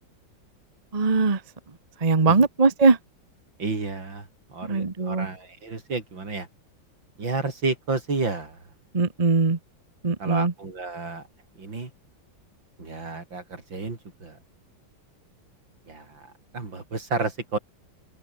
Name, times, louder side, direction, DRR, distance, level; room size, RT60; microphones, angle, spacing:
voice 1, 0.9-1.4 2.0-3.0 4.7-5.3 8.9-9.6 10.0-10.5, right 4 dB, 20° right, 1.2 m, -20 dB
voice 2, 3.6-6.5 7.2-8.6 10.2-11.2 11.6-11.9 12.8-14.4 15.9-17.6, right 3 dB, 70° right, 5.5 m, -31 dB
open air
omnidirectional pair, 2.1 m